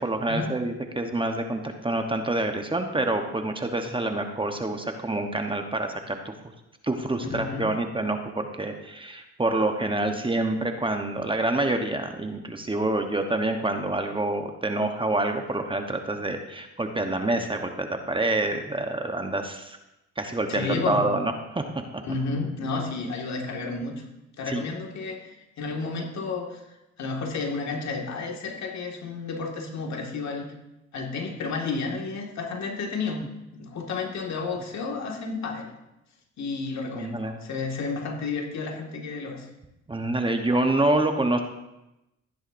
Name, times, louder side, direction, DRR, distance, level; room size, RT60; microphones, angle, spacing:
voice 1, 0.0-6.3 6.8-19.8 20.2-21.6 21.9-22.0 24.5-24.6 36.9-37.4 39.9-41.4, right 2 dB, 15° right, 5 dB, 1.0 m, -27 dB
voice 2, 7.3-7.7 20.5-21.0 22.0-24.0 24.4-25.3 25.6-26.6 27.0-30.5 30.9-33.2 33.6-35.7 36.4-39.5, left 4 dB, 65° left, 1 dB, 2.0 m, -31 dB
14.0 x 9.8 x 2.6 m, 0.92 s
cardioid pair, 90°, 30 cm